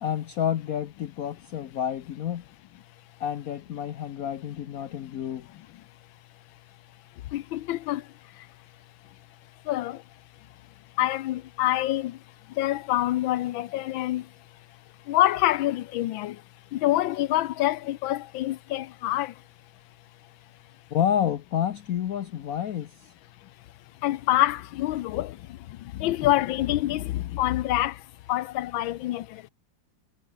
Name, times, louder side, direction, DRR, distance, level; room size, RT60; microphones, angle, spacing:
voice 1, 0.0-2.5 3.2-5.5 20.9-23.1, left 9 dB, 60° left, 1.0 m, -29 dB
voice 2, 7.3-8.0 9.7-10.0 11.0-12.2 12.6-14.2 15.1-16.4 16.7-19.3 24.0-25.4 26.0-27.9 28.3-29.2, left 15 dB, 90° left, 1.5 m, -26 dB
omnidirectional pair, 2.1 m